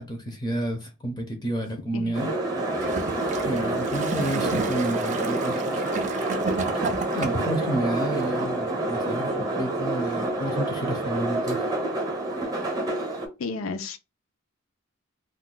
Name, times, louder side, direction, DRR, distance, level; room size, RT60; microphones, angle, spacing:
voice 1, 0.0-2.3 3.4-6.2 7.1-11.7, right 1 dB, 20° left, 0.5 m, -30 dB
sound 1, 2.1-13.3, right 2 dB, 20° right, 0.7 m, -27 dB
Gurgling / Toilet flush, 2.7-7.6 8.4-8.5, right 4 dB, 35° right, 0.4 m, -33 dB
voice 2, 13.4-14.0, left 4 dB, 80° left, 0.5 m, -32 dB
2.3 x 2.2 x 3.8 m
head